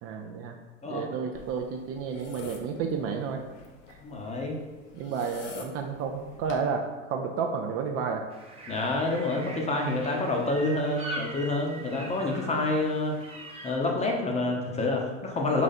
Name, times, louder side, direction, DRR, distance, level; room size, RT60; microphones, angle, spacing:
voice 1, 0.0-0.5 0.8-3.4 3.9-4.0 4.9-8.2 11.9-12.2, right 6 dB, 40° right, 3 dB, 0.4 m, -31 dB
sound 1, 1.3-6.6, left 4 dB, 70° left, 0.8 m, -47 dB
voice 2, 4.0-4.6 8.7-13.2 13.6-15.6, left 2 dB, 20° left, 0 dB, 0.7 m, -28 dB
sound 2, 8.3-13.7, right 1 dB, 15° right, 0.8 m, -42 dB
4.0 x 2.4 x 4.1 m, 1.3 s
hypercardioid pair, 90°, 36 cm